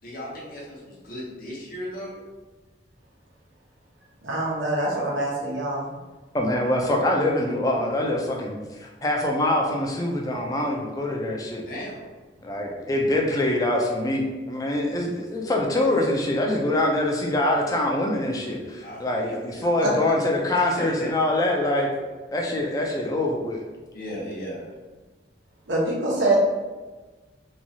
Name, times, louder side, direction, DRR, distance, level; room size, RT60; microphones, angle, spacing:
voice 1, 0.0-2.2 11.6-12.1 18.8-19.7 20.8-21.1 23.9-24.7, equal, 50° left, -4 dB, 0.8 m, -36 dB
voice 2, 4.2-5.9 19.8-19.9 25.7-26.4, right 2 dB, 85° right, -4 dB, 0.8 m, -24 dB
voice 3, 6.3-11.6 12.4-21.9 22.3-23.6, left 1 dB, 20° left, -1 dB, 0.4 m, -24 dB
3.0 x 2.3 x 2.6 m, 1.3 s
head